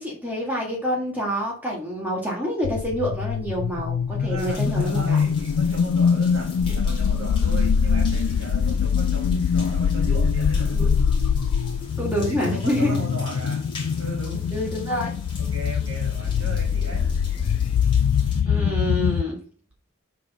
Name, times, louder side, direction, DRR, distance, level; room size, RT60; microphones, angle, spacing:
voice 1, 0.0-5.2 12.0-13.0 14.5-15.1 18.5-19.4, equal, 10° right, -3 dB, 1.7 m, -27 dB
sound 1, 2.6-19.2, left 6 dB, 85° left, 0.3 m, -23 dB
voice 2, 4.2-11.0 12.2-13.6 14.0-14.5 15.4-17.1, right 2 dB, 75° right, 1 dB, 1.7 m, -37 dB
sound 2, 4.4-18.4, left 2 dB, 25° left, 2.1 m, -43 dB
6.6 x 3.8 x 5.8 m, 0.43 s
head